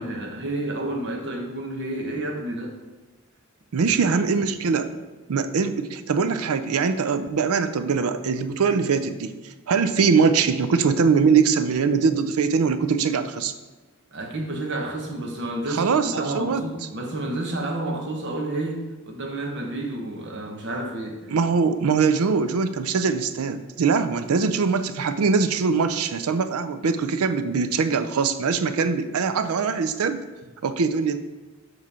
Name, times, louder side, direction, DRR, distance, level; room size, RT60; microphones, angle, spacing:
voice 1, 0.0-2.8 3.8-4.3 14.1-21.2, right 1 dB, 55° right, 2 dB, 1.1 m, -30 dB
voice 2, 3.7-4.9 5.3-9.3 9.7-13.5 15.7-16.6 21.3-30.2 30.6-31.2, right 5 dB, 80° right, 11 dB, 0.4 m, -22 dB
7.3 x 3.2 x 5.5 m, 1.2 s
head